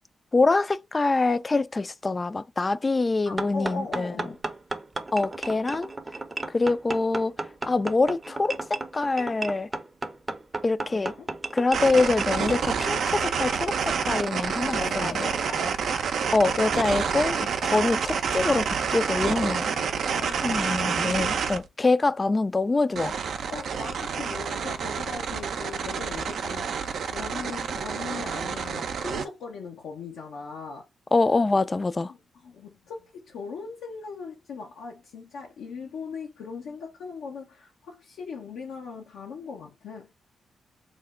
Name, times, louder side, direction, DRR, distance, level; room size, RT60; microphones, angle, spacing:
voice 1, 0.3-4.3 5.1-5.9 6.5-7.3 7.6-9.7 10.6-11.1 11.5-15.3 16.3-19.7 20.4-23.2 31.1-32.1, left 3 dB, 30° left, 0.3 m, -25 dB
voice 2, 3.3-4.4 10.9-11.3 13.8-14.0 14.6-15.8 19.7-20.6 23.5-30.8 32.1-32.2 32.4-40.1, left 4 dB, 80° left, 0.6 m, -39 dB
sound 1, 3.4-12.6, right 2 dB, 25° right, 0.6 m, -34 dB
sound 2, 11.7-21.6 23.0-29.3, right 6 dB, 70° right, 0.4 m, -28 dB
3.2 x 2.0 x 3.5 m
supercardioid pair, 50°, 0 cm